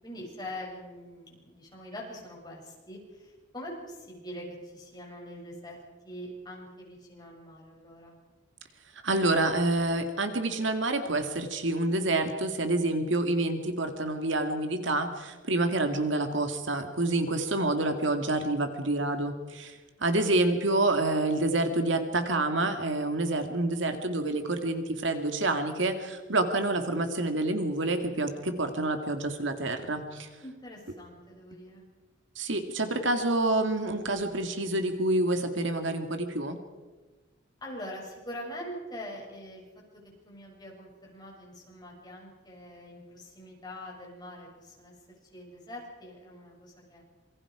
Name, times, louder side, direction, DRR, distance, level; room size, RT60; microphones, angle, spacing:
voice 1, 0.0-5.8 6.0-8.2 30.4-31.8 37.6-39.7 39.9-44.9 45.2-47.0, equal, 20° left, -2 dB, 7.2 m, -43 dB
voice 2, 9.0-30.3 32.4-36.6, right 2 dB, 65° right, 6 dB, 2.1 m, -28 dB
27.0 x 24.0 x 5.0 m, 1.3 s
head